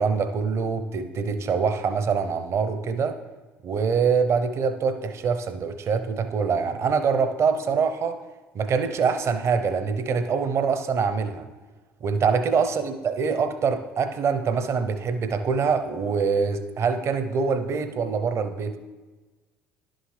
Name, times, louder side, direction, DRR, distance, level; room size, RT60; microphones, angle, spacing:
voice 1, 0.0-3.2 3.6-8.2 8.5-11.4 12.0-18.8, right 5 dB, 45° right, 9 dB, 0.7 m, -24 dB
11.0 x 6.3 x 3.3 m, 1.2 s
hypercardioid pair, 60°, 6 cm